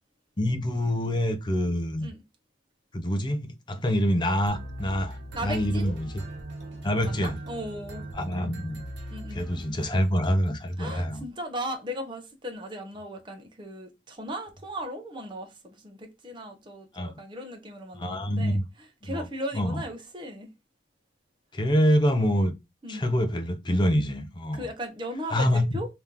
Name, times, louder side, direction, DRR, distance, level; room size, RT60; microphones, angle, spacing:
voice 1, 0.4-2.1 2.9-6.2 6.8-7.3 8.1-8.9 9.3-11.2 16.9-17.1 18.0-18.6 19.0-19.3 19.5-19.8 21.5-22.5 22.9-24.7 25.3-25.8, equal, 25° left, 0.6 m, -26 dB
sound 1, 4.5-10.1, right 1 dB, 80° right, 1.0 m, -39 dB
voice 2, 5.3-5.9 7.0-8.0 9.1-9.4 10.8-18.6 19.0-20.5 22.8-23.0 24.5-25.9, equal, 25° right, 0.9 m, -37 dB
3.5 x 2.9 x 3.6 m
head